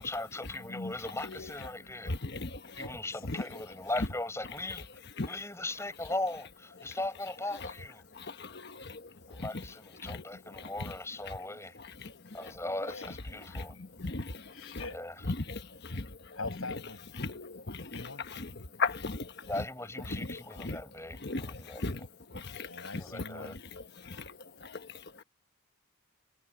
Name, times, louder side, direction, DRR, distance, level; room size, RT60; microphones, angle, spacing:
voice 1, 0.0-2.2 2.8-4.9 5.3-8.0 9.3-11.8 12.3-13.8 14.9-15.1 19.4-22.0 22.9-23.6, left 2 dB, 15° left, 6.9 m, -38 dB
voice 2, 2.1-2.9 3.2-3.4 5.2-5.3 8.1-9.7 10.0-10.2 10.6-10.9 11.3-11.4 11.8-12.5 13.5-14.8 15.4-16.4 17.2-19.6 20.1-20.8 21.2-23.0 23.4-23.5 23.8-25.2, left 3 dB, 50° left, 1.3 m, -39 dB
voice 3, 3.1-3.5 12.9-13.1 13.7-13.8 14.5-15.0 16.3-17.1 17.8-18.2 22.6-23.6, left 3 dB, 75° left, 7.9 m, -43 dB
head